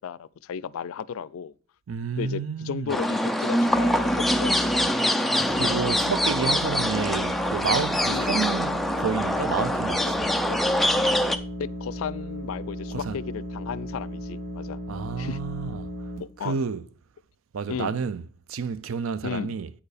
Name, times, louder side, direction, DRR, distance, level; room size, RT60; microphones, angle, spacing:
voice 1, 0.0-1.5 2.2-4.6 6.9-7.1 8.1-8.4 10.5-10.6 11.6-14.8 15.2-15.4 16.2-16.6 17.7-18.0 19.2-19.6, left 7 dB, 85° left, 0.4 m, -34 dB
voice 2, 1.9-3.0 5.5-10.3 12.9-13.2 14.9-15.9 16.4-16.9 17.5-18.2 18.5-19.7, right 6 dB, 85° right, 0.4 m, -30 dB
sound 1, 2.9-11.4, left 1 dB, ahead, 0.3 m, -24 dB
sound 2, 3.7-4.9 5.4-16.2, equal, 65° right, 2.0 m, -35 dB
8.8 x 4.6 x 4.9 m
head